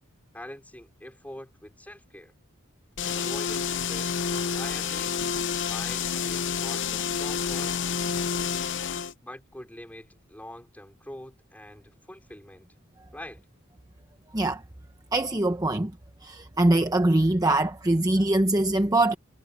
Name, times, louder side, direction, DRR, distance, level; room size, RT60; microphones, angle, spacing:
voice 1, 0.3-2.3 3.0-5.1 5.6-7.7 9.2-12.7 13.1-13.4, left 1 dB, 5° left, 4.9 m, -44 dB
sound 1, 3.0-9.1, left 6 dB, 60° left, 0.7 m, -29 dB
voice 2, 15.1-15.9 16.2-19.1, right 2 dB, 15° right, 0.9 m, -23 dB
head